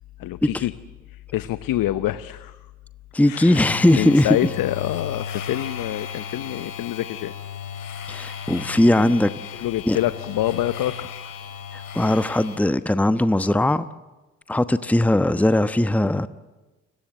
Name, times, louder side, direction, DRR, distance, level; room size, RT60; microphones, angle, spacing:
voice 1, 0.2-0.7 1.1-2.6 3.2-3.6 3.9-7.3 9.0-9.1 9.5-11.4, left 14 dB, 65° left, 14 dB, 0.9 m, -26 dB
voice 2, 3.1-4.5 8.1-10.0 11.7-13.9 14.5-16.3, left 1 dB, 5° left, 12 dB, 1.1 m, -20 dB
sound 1, 3.5-12.6, left 7 dB, 90° left, 3.3 m, -35 dB
29.5 x 22.0 x 8.0 m, 1.1 s
hypercardioid pair, 45°, 37 cm